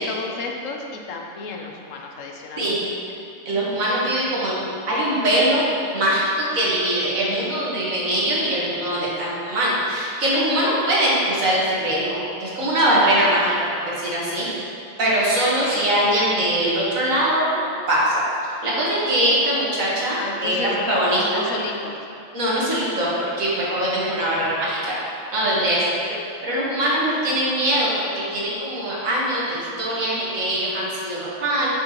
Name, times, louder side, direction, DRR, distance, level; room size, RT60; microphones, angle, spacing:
voice 1, 0.0-2.7 3.1-3.2 15.6-15.9 20.1-21.9, left 3 dB, 70° left, 1 dB, 1.1 m, -32 dB
voice 2, 3.5-4.6 4.9-5.6 5.9-13.5 13.9-14.7 15.0-18.2 18.6-21.4 22.3-23.1 23.4-25.0 25.3-26.2 26.4-27.9 28.1-31.7, right 1 dB, 80° right, -6 dB, 1.9 m, -22 dB
7.8 x 6.7 x 3.0 m, 2.5 s
omnidirectional pair, 1.4 m